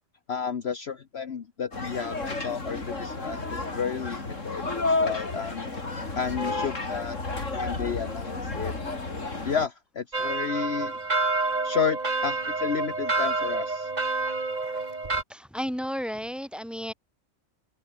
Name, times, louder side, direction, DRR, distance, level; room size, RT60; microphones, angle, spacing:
voice 1, 0.3-5.6 6.1-7.2 7.5-8.7 9.4-11.0 11.6-13.9, left 6 dB, 55° left, 1.3 m, -32 dB
sound 1, 1.7-9.7, left 3 dB, 70° left, 4.2 m, -31 dB
sound 2, 10.1-15.2, right 3 dB, 35° right, 2.0 m, -28 dB
voice 2, 15.3-16.9, equal, ahead, 4.9 m, -33 dB
omnidirectional pair, 1.4 m